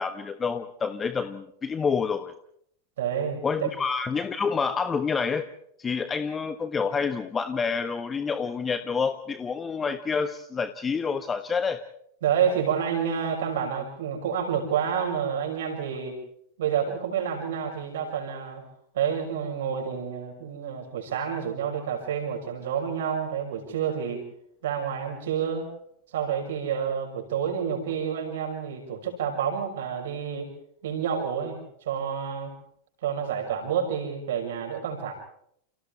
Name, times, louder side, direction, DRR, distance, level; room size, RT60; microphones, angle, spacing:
voice 1, 0.0-2.3 3.4-5.5 5.8-11.8, left 5 dB, 20° left, 11 dB, 1.2 m, -28 dB
voice 2, 3.0-3.7 12.2-16.2 16.6-18.6 18.9-24.2 24.6-25.7 26.1-30.5 30.8-32.5 33.0-35.1, right 7 dB, 60° right, 2 dB, 6.4 m, -29 dB
30.0 x 29.0 x 3.4 m, 0.69 s
figure-of-eight pair, 90°, 0 cm